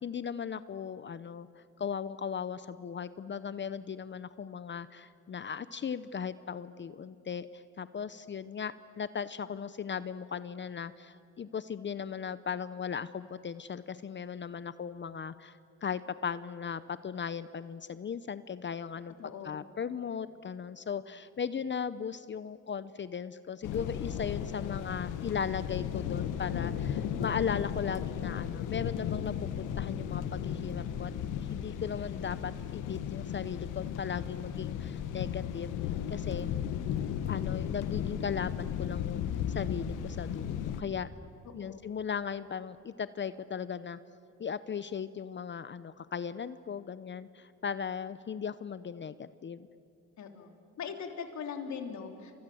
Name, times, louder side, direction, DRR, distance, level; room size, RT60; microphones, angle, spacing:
voice 1, 0.0-19.1 19.4-31.1 31.5-35.8 36.1-36.5 37.3-41.1 41.5-44.0 44.4-49.7, left 7 dB, 40° left, 15 dB, 0.8 m, -37 dB
voice 2, 19.2-19.6 41.6-41.8 50.2-50.5 50.8-52.3, left 6 dB, 65° left, 4 dB, 3.3 m, -40 dB
sound 1, 23.6-40.8, left 9 dB, 90° left, 1.4 m, -35 dB
29.0 x 26.5 x 7.8 m, 2.5 s
cardioid pair, 90°, 30 cm